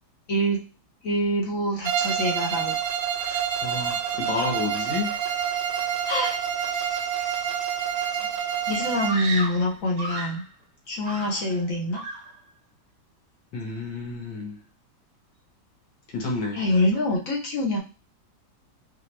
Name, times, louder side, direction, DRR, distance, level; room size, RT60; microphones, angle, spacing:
voice 1, 0.3-0.6 1.0-2.8 6.1-6.4 6.7-7.3 8.7-10.4 10.9-12.0 16.5-17.8, left 1 dB, 60° left, 1.0 m, -25 dB
Bowed string instrument, 1.8-9.3, right 8 dB, 90° right, 1.4 m, -28 dB
voice 2, 3.2-5.2 13.5-14.6 16.1-16.6, left 3 dB, 75° left, 1.7 m, -31 dB
Screaming, 9.1-10.5 11.0-11.7 11.9-12.4, right 2 dB, 70° right, 1.3 m, -34 dB
4.9 x 2.0 x 3.1 m
omnidirectional pair, 1.9 m